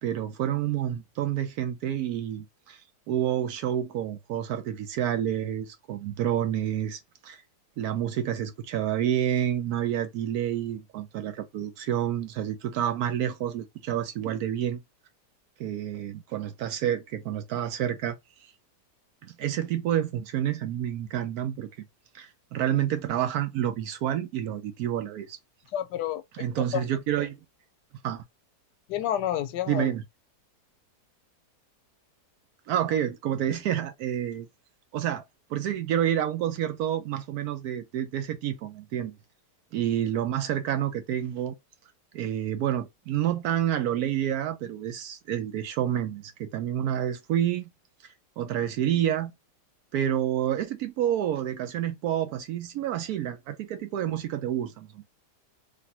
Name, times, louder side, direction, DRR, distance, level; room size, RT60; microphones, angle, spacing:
voice 1, 0.0-2.8 3.1-7.4 7.8-14.8 15.6-18.2 19.2-21.7 22.1-25.4 26.3-27.4 28.0-28.2 29.7-30.0 32.7-34.5 34.9-35.2 35.5-39.1 39.7-41.6 42.1-47.7 48.4-49.3 49.9-55.0, right 10 dB, 70° right, 1.0 m, -29 dB
voice 2, 25.7-26.2 26.6-26.8 28.9-29.9, left 11 dB, 80° left, 1.2 m, -29 dB
3.3 x 2.5 x 2.7 m
omnidirectional pair, 1.8 m